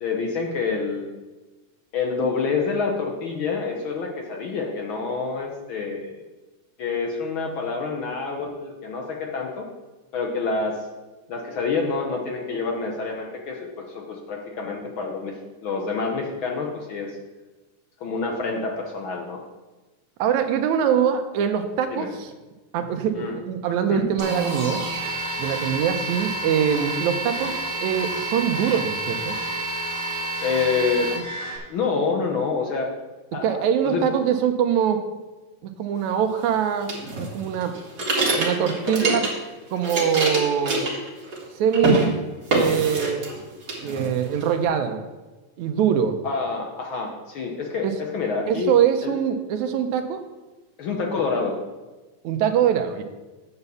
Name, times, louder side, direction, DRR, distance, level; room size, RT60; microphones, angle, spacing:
voice 1, 0.0-1.1 1.9-6.2 6.8-9.7 10.1-10.9 11.3-15.4 15.6-17.2 18.0-19.4 21.9-22.1 23.1-23.4 23.9-24.0 30.4-31.1 31.7-32.9 33.3-34.0 38.9-39.2 46.2-48.7 49.0-49.1 50.8-51.6, left 4 dB, 75° left, 1 dB, 1.1 m, -27 dB
voice 2, 20.2-22.3 22.7-24.8 25.4-29.4 33.4-35.0 35.6-36.9 37.2-37.7 38.4-39.2 39.7-40.8 41.6-42.1 42.5-43.3 43.8-45.0 45.6-46.2 47.8-47.9 48.5-50.2 52.2-53.0, right 8 dB, 80° right, 7 dB, 2.0 m, -23 dB
sound 1, 24.2-31.6, right 1 dB, 10° right, 1.6 m, -29 dB
sound 2, 36.9-39.5 39.8-41.5 41.7-42.1 42.5-43.4 43.7-44.5, right 2 dB, 35° right, 2.0 m, -25 dB
8.1 x 5.5 x 6.8 m, 1.2 s
omnidirectional pair, 3.5 m